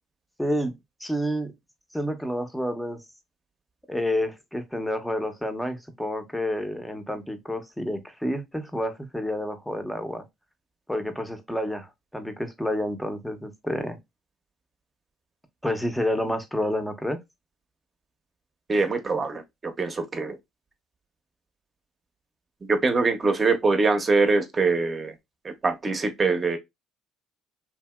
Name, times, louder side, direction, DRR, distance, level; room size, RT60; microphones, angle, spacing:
voice 1, 0.4-0.7 1.0-1.5 1.9-3.0 3.9-10.2 10.9-14.0 15.6-17.2, equal, 5° left, 0.7 m, -29 dB
voice 2, 18.7-20.4 22.7-25.1 25.4-26.6, right 3 dB, 30° right, 0.8 m, -23 dB
2.7 x 2.7 x 2.2 m
supercardioid pair, 75°, 0 cm